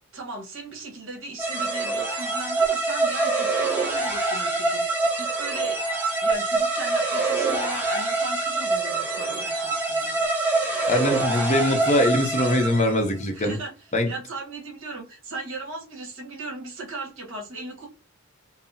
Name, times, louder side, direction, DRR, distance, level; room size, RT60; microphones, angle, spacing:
voice 1, 0.1-5.8 6.2-10.2 13.3-17.9, right 2 dB, 60° right, 1.4 m, -37 dB
sound 1, 1.4-13.1, right 3 dB, 10° right, 0.9 m, -25 dB
voice 2, 10.9-13.6 13.9-14.1, left 1 dB, 30° left, 0.6 m, -22 dB
5.5 x 2.0 x 2.7 m
head